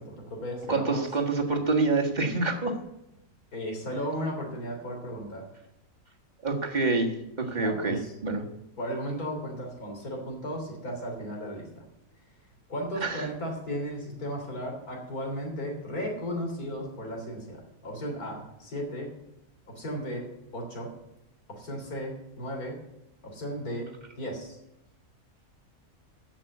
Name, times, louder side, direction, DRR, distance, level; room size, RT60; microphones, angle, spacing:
voice 1, 0.1-1.0 3.5-5.4 7.6-8.1 8.8-11.8 12.7-19.1 19.8-20.2 20.5-20.9 21.5-22.8 23.2-23.9 24.2-24.6, equal, 80° left, 1 dB, 3.8 m, -35 dB
voice 2, 0.7-2.8 6.4-8.4 13.0-13.3, right 3 dB, 30° right, 2 dB, 1.7 m, -27 dB
14.5 x 6.0 x 8.1 m, 0.87 s
omnidirectional pair, 1.6 m